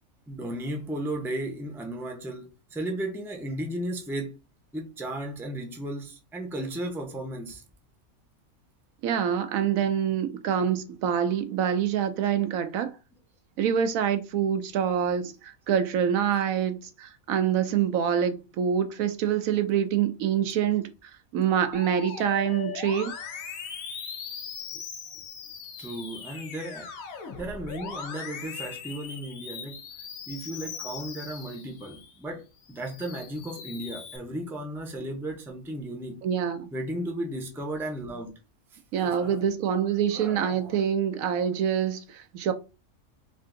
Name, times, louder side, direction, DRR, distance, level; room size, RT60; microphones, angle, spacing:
voice 1, 0.3-4.3 4.7-7.6 10.5-10.6 25.8-26.9 27.4-29.8 30.3-36.2 36.7-38.3 38.7-39.5 40.1-40.8, right 1 dB, ahead, 0.5 m, -35 dB
voice 2, 9.0-12.9 13.6-23.1 36.2-36.7 38.9-42.5, right 8 dB, 80° right, 1.0 m, -26 dB
Musical instrument, 21.7-32.1 32.6-34.2, left 6 dB, 75° left, 1.2 m, -40 dB
3.5 x 2.6 x 3.7 m
omnidirectional pair, 1.4 m